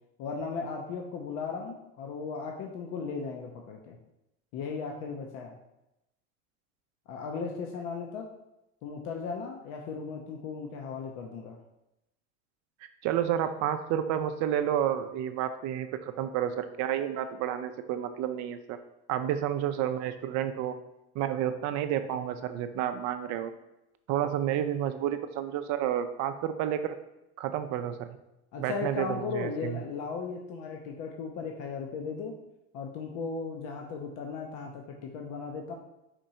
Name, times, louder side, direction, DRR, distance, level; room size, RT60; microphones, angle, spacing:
voice 1, 0.2-4.0 4.5-5.6 7.1-8.2 8.8-11.6 28.5-32.3 32.7-35.7, left 5 dB, 65° left, 1 dB, 0.7 m, -36 dB
voice 2, 13.0-18.8 19.1-20.7 21.2-23.5 24.1-27.0 27.4-28.2 28.6-29.8, right 10 dB, 55° right, 9 dB, 0.4 m, -30 dB
4.4 x 2.6 x 4.2 m, 0.89 s
supercardioid pair, 105°, 33 cm